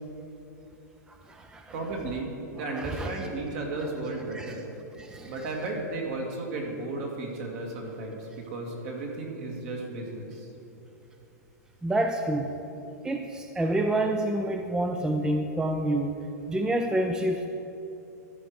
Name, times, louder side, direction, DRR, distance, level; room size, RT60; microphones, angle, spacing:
voice 1, 1.1-1.7 2.7-3.1 4.3-4.5 5.0-5.3 11.8-12.5 13.0-17.5, right 1 dB, 5° right, 5 dB, 0.4 m, -28 dB
voice 2, 1.7-4.7 5.2-10.5, right 2 dB, 55° right, 0 dB, 2.0 m, -34 dB
13.5 x 5.1 x 4.7 m, 2.8 s
hypercardioid pair, 120°, 9 cm